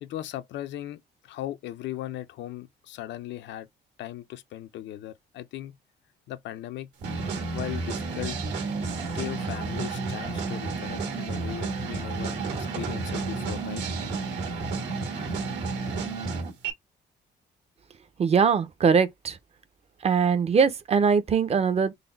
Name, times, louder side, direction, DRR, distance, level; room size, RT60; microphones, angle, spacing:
voice 1, 0.0-3.7 4.0-5.8 6.3-6.9 7.5-8.4 9.0-13.8, left 13 dB, 75° left, 0.5 m, -38 dB
sound 1, 7.0-16.7, right 4 dB, 75° right, 1.8 m, -31 dB
voice 2, 18.2-19.4 20.0-21.9, right 6 dB, 35° right, 0.6 m, -22 dB
3.9 x 2.1 x 4.0 m
cardioid pair, 135°, 19 cm